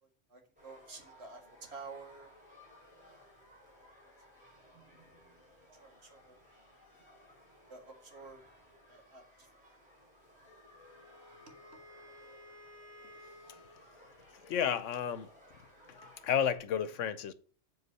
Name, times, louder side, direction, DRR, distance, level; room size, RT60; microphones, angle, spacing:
voice 1, 0.0-2.3 3.2-3.3 4.0-4.4 5.8-6.4 7.7-8.4 8.9-9.5, right 4 dB, 60° right, 2.0 m, -51 dB
sound 1, 0.6-16.6, left 1 dB, 5° right, 4.2 m, -59 dB
Wind instrument woodwind instrument, 10.6-13.9, left 1 dB, 75° right, 2.9 m, -55 dB
voice 2, 14.5-15.3 16.2-17.3, left 8 dB, 85° left, 1.1 m, -31 dB
8.1 x 4.6 x 5.4 m
omnidirectional pair, 1.2 m